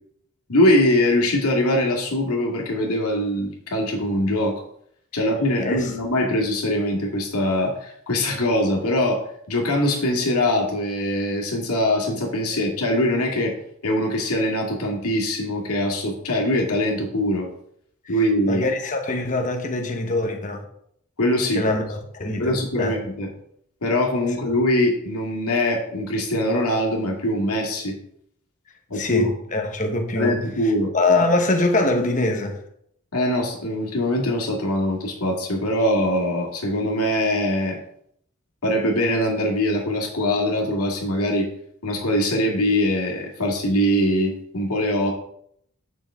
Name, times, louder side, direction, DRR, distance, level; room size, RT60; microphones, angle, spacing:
voice 1, 0.5-4.5 5.1-9.2 9.5-13.5 13.8-17.5 18.1-18.6 21.2-21.8 22.4-23.3 23.8-28.0 28.9-29.3 30.2-30.9 33.1-37.8 38.6-41.5 41.8-45.1, left 1 dB, 90° left, 2.2 m, -22 dB
voice 2, 18.5-20.6 21.5-23.0 28.9-32.6, left 2 dB, 35° left, 1.2 m, -24 dB
8.9 x 6.2 x 3.6 m
head